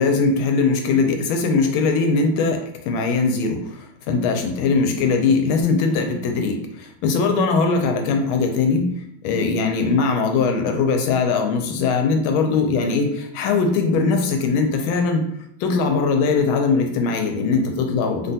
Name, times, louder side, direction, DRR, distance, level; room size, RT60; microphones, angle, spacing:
voice 1, 0.0-8.9 9.2-15.2 15.6-18.3, left 4 dB, 85° left, 4 dB, 1.4 m, -20 dB
3.4 x 2.2 x 2.6 m, 0.76 s
omnidirectional pair, 2.2 m